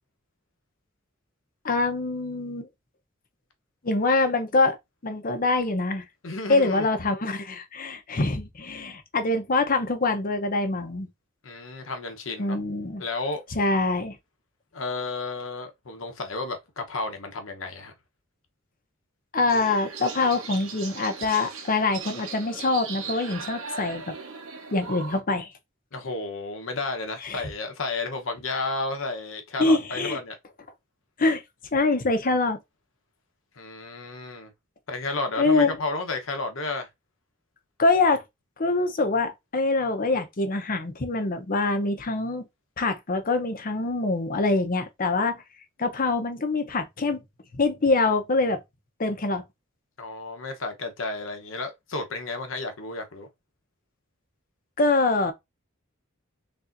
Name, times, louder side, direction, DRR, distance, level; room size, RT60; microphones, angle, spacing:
voice 1, 1.6-2.7 3.8-4.8 5.0-6.1 6.5-11.1 12.4-13.0 13.5-14.2 19.3-24.1 24.7-25.5 27.2-27.4 29.6-30.2 31.2-31.4 31.7-32.6 35.4-35.8 37.8-38.2 38.6-42.4 42.8-45.4 45.8-47.2 47.6-48.6 49.0-49.4 54.8-55.3, left 3 dB, 45° left, 0.8 m, -24 dB
voice 2, 6.2-6.9 11.4-12.6 13.0-13.4 14.7-17.9 25.9-30.4 33.6-34.5 34.9-36.9 50.0-53.3, left 3 dB, 70° left, 0.9 m, -32 dB
sound 1, 19.5-25.2, right 5 dB, 80° right, 1.0 m, -38 dB
4.1 x 3.4 x 2.6 m
head